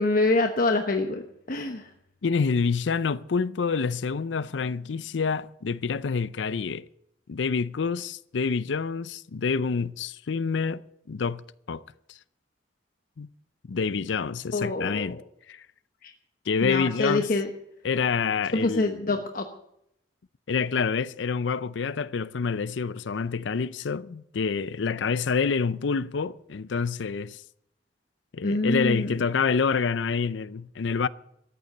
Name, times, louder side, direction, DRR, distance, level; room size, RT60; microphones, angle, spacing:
voice 1, 0.0-1.9 14.5-15.2 16.0-16.1 16.6-17.5 18.5-19.5 28.4-29.2, left 2 dB, 50° left, 1.1 m, -26 dB
voice 2, 2.2-6.8 7.3-10.8 11.1-11.4 11.7-11.8 12.1-12.2 13.2-13.3 13.7-15.2 15.5-15.7 16.5-17.3 17.8-19.0 20.5-27.4 28.3-31.1, left 5 dB, 80° left, 0.5 m, -27 dB
14.0 x 9.4 x 8.2 m
head